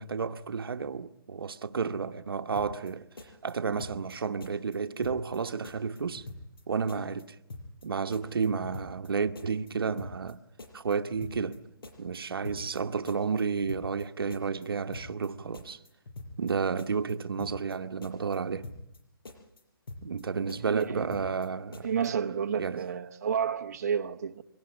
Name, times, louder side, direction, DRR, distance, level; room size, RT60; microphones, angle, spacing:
voice 1, 0.0-6.3 6.7-7.4 7.8-10.4 10.7-11.7 12.0-15.8 16.4-18.7 20.0-21.9 22.6-22.9, right 5 dB, 75° right, 1.1 m, -31 dB
sound 1, 2.6-2.9 3.2-4.1 4.4-4.8 5.0-5.4 5.6-6.6 6.9-7.2 7.5-7.9 8.1-9.1 9.4-9.7 10.0-10.3 10.6-11.6 11.8-12.2 12.4-12.8 13.1-14.0 14.3-14.7 14.9-15.3 15.5-16.5 16.8-17.1 17.4-17.8 18.0-19.0 19.3-19.6 19.9-20.2 20.5-21.5 21.7-22.1, left 2 dB, 70° left, 6.2 m, -44 dB
voice 2, 20.7-21.2 21.8-24.4, right 7 dB, 45° right, 1.0 m, -30 dB
23.5 x 18.5 x 9.8 m
hypercardioid pair, 170°, 12 cm